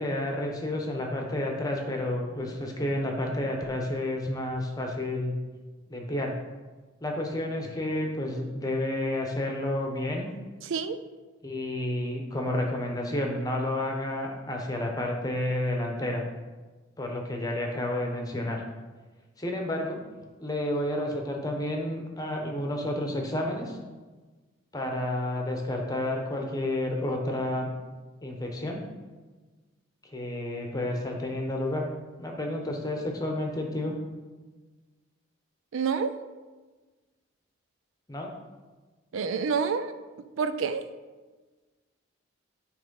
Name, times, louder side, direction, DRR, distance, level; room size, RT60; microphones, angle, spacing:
voice 1, 0.0-5.3 5.9-6.3 7.0-10.3 11.4-16.2 17.0-18.6 19.4-20.0 20.4-23.8 24.7-27.7 28.2-28.8 30.0-31.8 32.2-34.0 38.1-38.3, left 1 dB, 20° left, 1 dB, 1.0 m, -30 dB
voice 2, 10.6-11.0 35.7-36.1 39.1-39.9 40.4-40.8, right 5 dB, 75° right, 11 dB, 0.4 m, -28 dB
10.0 x 3.3 x 5.4 m, 1.3 s
head